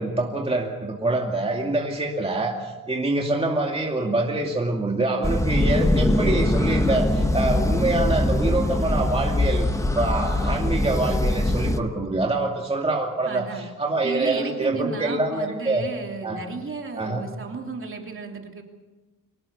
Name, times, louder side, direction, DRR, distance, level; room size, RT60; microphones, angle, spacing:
voice 1, 0.0-9.7 9.9-15.8 16.2-16.4 17.0-17.2, right 2 dB, 20° right, 0 dB, 2.4 m, -25 dB
sound 1, 5.2-11.8, left 1 dB, 10° left, 1.1 m, -22 dB
voice 2, 13.2-13.7 14.0-18.6, right 4 dB, 40° right, 2 dB, 3.2 m, -33 dB
24.0 x 19.0 x 7.1 m, 1.2 s
wide cardioid pair, 140°, 33 cm